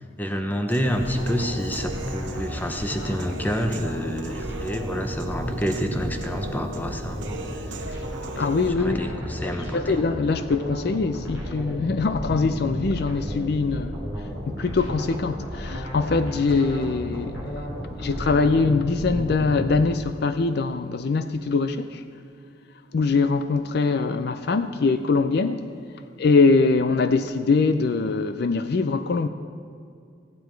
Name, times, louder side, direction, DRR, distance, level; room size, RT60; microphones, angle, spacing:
voice 1, 0.2-7.2 7.7-7.8 8.8-10.0, equal, 10° left, 0.7 m, -28 dB
Human voice / Piano, 0.7-8.7, right 2 dB, 70° right, 0.8 m, -38 dB
sound 1, 0.8-19.7, equal, 75° left, 3.7 m, -33 dB
voice 2, 8.4-9.0 9.4-14.0 14.5-17.5 18.0-22.0 22.9-25.6 26.2-29.3, left 4 dB, 55° left, 0.4 m, -23 dB
15.0 x 9.6 x 4.5 m
head